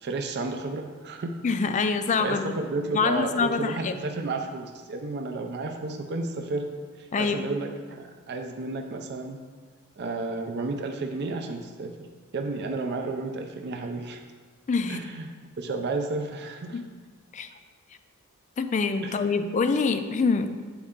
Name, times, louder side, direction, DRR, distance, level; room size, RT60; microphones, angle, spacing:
voice 1, 0.0-1.4 2.2-6.7 7.0-9.4 10.0-11.9 12.3-14.2 14.9-15.2 15.6-16.8 19.0-19.2, right 3 dB, 50° right, 5 dB, 0.5 m, -32 dB
voice 2, 1.4-2.5 2.9-3.9 7.1-7.5 14.7-15.0 16.7-16.9 17.3-17.5 18.6-20.5, left 4 dB, 35° left, 9 dB, 0.3 m, -25 dB
7.8 x 4.3 x 3.7 m, 1.5 s
head